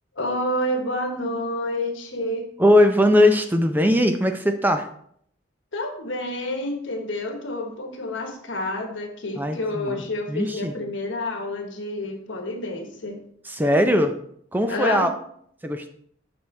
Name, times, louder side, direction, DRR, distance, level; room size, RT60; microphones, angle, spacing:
voice 1, 0.2-2.5 5.7-13.2 14.7-15.1, left 1 dB, 80° left, 3 dB, 1.3 m, -29 dB
voice 2, 2.6-4.9 9.4-10.7 13.4-14.1 14.5-15.1 15.6-15.9, left 1 dB, 10° right, 6 dB, 0.5 m, -20 dB
7.2 x 6.1 x 3.3 m, 0.66 s
head